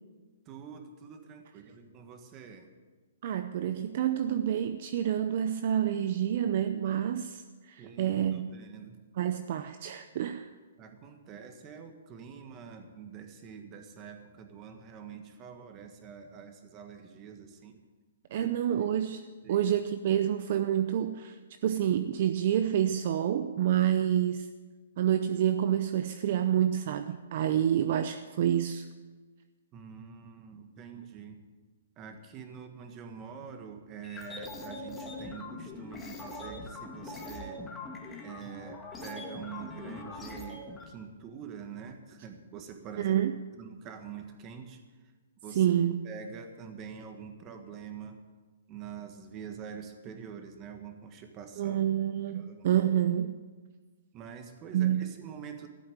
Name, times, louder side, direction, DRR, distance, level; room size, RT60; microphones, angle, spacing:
voice 1, 0.5-2.7 7.8-9.0 10.8-17.8 18.3-18.5 19.4-19.6 29.7-31.4 32.0-37.6 38.2-43.2 43.6-44.8 45.4-45.6 46.0-48.2 48.7-51.8 52.3-52.7 54.1-55.7, right 7 dB, 25° right, 6 dB, 1.5 m, -45 dB
voice 2, 3.2-8.5 9.1-10.5 18.3-19.2 19.5-21.4 21.6-24.5 25.0-28.9 43.0-43.3 45.5-46.0 51.6-53.4 54.7-55.1, right 10 dB, 45° right, 9 dB, 0.6 m, -28 dB
sound 1, 34.0-40.8, left 2 dB, 10° left, 1.7 m, -42 dB
14.5 x 8.5 x 8.1 m, 1.4 s
hypercardioid pair, 160°, 0 cm